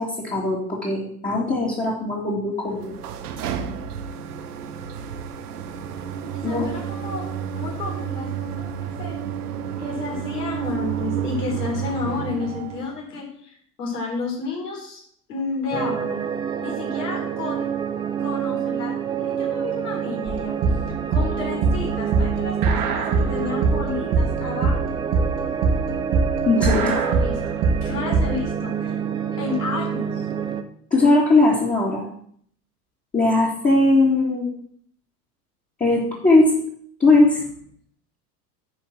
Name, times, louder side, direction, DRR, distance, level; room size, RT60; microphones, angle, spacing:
voice 1, 0.0-2.9 6.4-6.7 26.5-27.0 30.9-32.1 33.1-34.5 35.8-36.6 37.0-37.4, left 2 dB, 15° left, -6 dB, 2.4 m, -19 dB
sound 1, 2.7-13.0, right 8 dB, 70° right, 1.1 m, -31 dB
voice 2, 6.4-7.2 7.5-9.2 9.8-15.0 15.3-16.2 16.6-17.7 18.2-20.8 21.1-24.9 26.7-29.0 29.3-30.3, left 4 dB, 75° left, -2 dB, 4.0 m, -31 dB
sound 2, 15.7-30.6, right 8 dB, 10° right, 0.4 m, -27 dB
sound 3, 20.3-28.4, right 4 dB, 40° right, 1.7 m, -22 dB
9.4 x 4.6 x 7.4 m, 0.62 s
hypercardioid pair, 95°, 47 cm